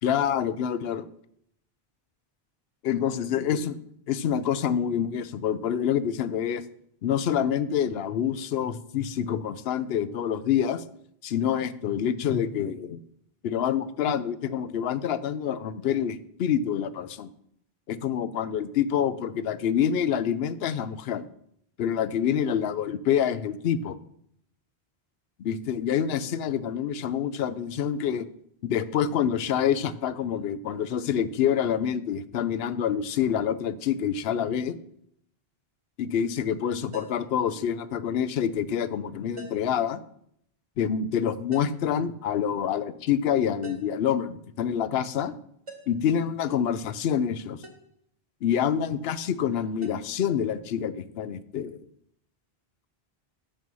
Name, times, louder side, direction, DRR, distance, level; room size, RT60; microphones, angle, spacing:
voice 1, 0.0-1.1 2.8-3.7 4.1-6.6 7.0-10.8 11.2-13.0 13.4-17.3 17.9-21.3 21.8-24.0 25.4-28.3 28.6-34.8 36.0-40.0 40.8-45.3 45.9-47.6 48.4-51.8, left 8 dB, 75° left, 15 dB, 0.8 m, -27 dB
sound 1, 36.9-37.3 39.4-39.8 41.5-41.9 43.6-44.0 45.7-46.1 47.6-47.9 49.8-50.0, right 2 dB, 30° right, 1.2 m, -44 dB
8.8 x 5.4 x 6.2 m, 0.70 s
omnidirectional pair, 1.1 m